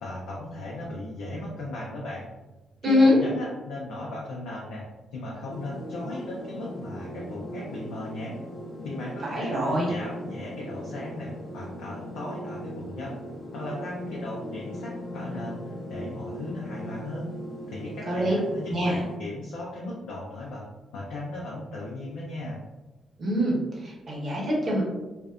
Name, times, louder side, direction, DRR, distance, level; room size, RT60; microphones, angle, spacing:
voice 1, 0.0-2.3 2.8-4.8 5.1-8.4 8.8-13.2 13.5-17.3 17.7-20.6 20.9-22.6, left 2 dB, 80° left, -5 dB, 0.5 m, -37 dB
voice 2, 2.8-3.2 9.3-9.9 18.1-18.3 18.7-19.0 23.2-24.8, left 1 dB, 50° right, -4 dB, 1.0 m, -24 dB
sound 1, 5.5-19.2, equal, 50° left, 0.8 m, -39 dB
2.5 x 2.2 x 2.3 m, 1.1 s
supercardioid pair, 50°, 0 cm